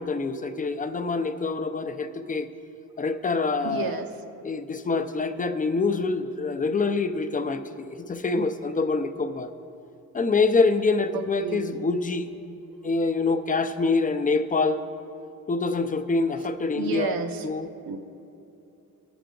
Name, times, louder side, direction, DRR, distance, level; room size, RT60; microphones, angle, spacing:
voice 1, 0.0-2.5 3.0-4.0 4.4-9.5 10.1-12.3 12.8-14.8 15.5-17.2 17.4-17.7, left 3 dB, 25° left, 9 dB, 0.5 m, -25 dB
voice 2, 3.5-4.2 11.1-11.8 12.7-12.8 16.7-17.5 17.9-18.0, right 6 dB, 85° right, 8 dB, 0.8 m, -32 dB
19.5 x 6.9 x 3.8 m, 2.8 s
cardioid pair, 120°, 34 cm